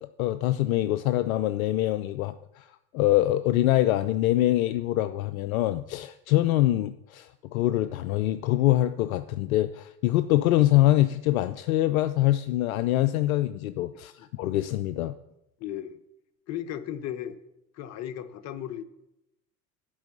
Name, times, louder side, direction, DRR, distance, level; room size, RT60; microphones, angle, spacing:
voice 1, 0.0-2.7 2.9-15.2, left 15 dB, 60° left, 13 dB, 0.5 m, -24 dB
voice 2, 15.6-16.0 16.5-17.4 17.7-18.8, left 10 dB, 35° left, 12 dB, 0.8 m, -35 dB
10.5 x 5.5 x 6.8 m, 0.89 s
figure-of-eight pair, 75°, 49 cm